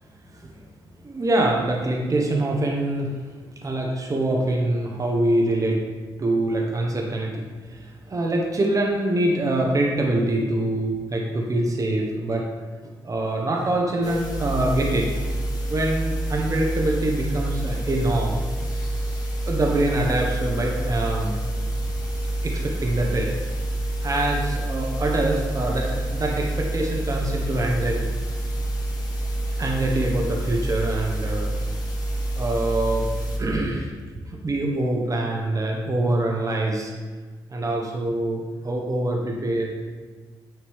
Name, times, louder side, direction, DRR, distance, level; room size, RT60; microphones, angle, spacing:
voice 1, 1.0-3.2 3.6-5.8 6.2-12.4 12.8-15.1 15.7-18.4 19.5-21.3 22.4-23.3 24.0-28.1 29.6-31.5 32.3-33.1 33.4-33.9 34.2-36.9 37.5-39.7, right 1 dB, 35° right, -1 dB, 1.1 m, -24 dB
sound 1, 14.0-33.4, right 1 dB, 40° left, 1.7 m, -27 dB
8.7 x 3.0 x 3.6 m, 1.4 s
supercardioid pair, 60°, 10 cm